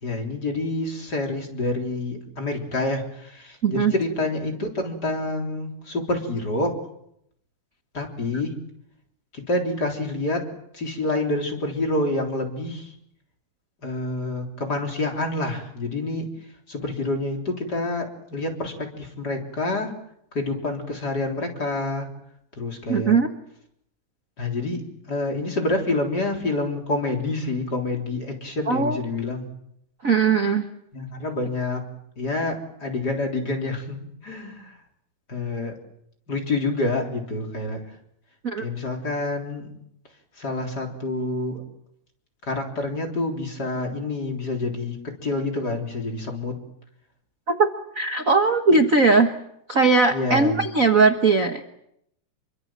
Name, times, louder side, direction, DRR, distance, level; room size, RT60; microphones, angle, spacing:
voice 1, 0.0-6.8 7.9-8.6 9.3-10.5 10.7-12.9 13.8-16.3 16.7-19.9 20.3-22.1 22.6-23.2 24.4-29.5 30.9-31.8 32.2-34.7 35.3-35.7 36.3-37.8 38.6-39.7 40.4-41.6 42.4-45.0 45.2-46.6 50.1-50.6, left 2 dB, 30° left, 2 dB, 4.1 m, -27 dB
voice 2, 3.6-3.9 22.9-23.3 28.7-29.0 30.0-30.7 38.4-38.6 47.5-49.3 49.7-51.6, right 4 dB, 85° right, 7 dB, 0.7 m, -19 dB
28.0 x 24.0 x 7.5 m, 0.75 s
omnidirectional pair, 3.9 m